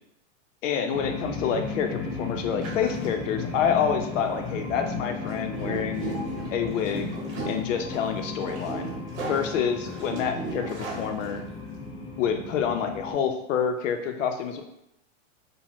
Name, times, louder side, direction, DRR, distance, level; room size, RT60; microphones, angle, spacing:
voice 1, 0.6-6.1 6.5-7.1 7.5-8.9 9.3-11.4 12.2-14.6, left 7 dB, 80° left, 5 dB, 0.6 m, -27 dB
sound 1, 0.9-13.1, left 4 dB, 25° left, 0.3 m, -35 dB
sound 2, 2.6-3.1 4.4-4.6 5.2-11.6, right 3 dB, 60° right, 0.8 m, -36 dB
2.6 x 2.1 x 3.0 m, 0.82 s
supercardioid pair, 160°, 37 cm